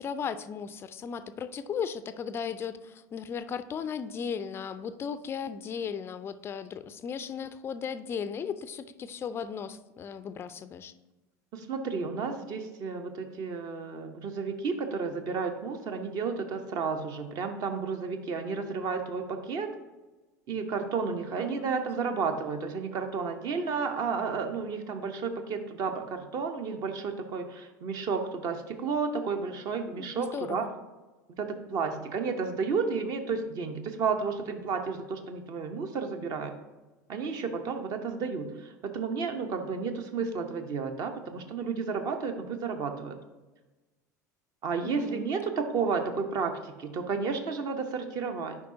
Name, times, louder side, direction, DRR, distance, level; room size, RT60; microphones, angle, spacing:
voice 1, 0.0-10.9 21.4-21.8 29.9-30.7 44.8-45.3, left 7 dB, 25° left, 13 dB, 0.4 m, -36 dB
voice 2, 11.5-19.7 20.5-30.6 31.4-36.5 37.1-43.2 44.6-48.6, right 5 dB, 40° right, 6 dB, 0.8 m, -32 dB
10.5 x 4.8 x 2.7 m, 1.1 s
figure-of-eight pair, 75°, 10 cm